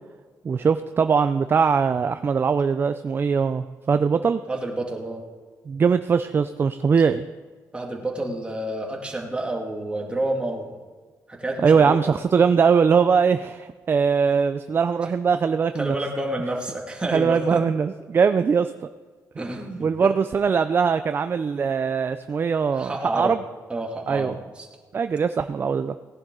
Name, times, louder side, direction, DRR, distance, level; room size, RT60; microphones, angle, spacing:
voice 1, 0.4-4.4 5.7-7.2 11.6-16.0 17.1-18.7 19.8-23.4 24.1-24.4 24.9-25.9, right 6 dB, 35° right, 10 dB, 0.5 m, -21 dB
voice 2, 4.5-5.3 7.7-10.8 11.3-12.0 15.8-17.6 19.4-20.1 22.7-23.4 23.7-24.7, right 1 dB, 15° right, 0 dB, 2.2 m, -29 dB
18.0 x 10.5 x 3.8 m, 1.5 s
cardioid pair, 120°, 6 cm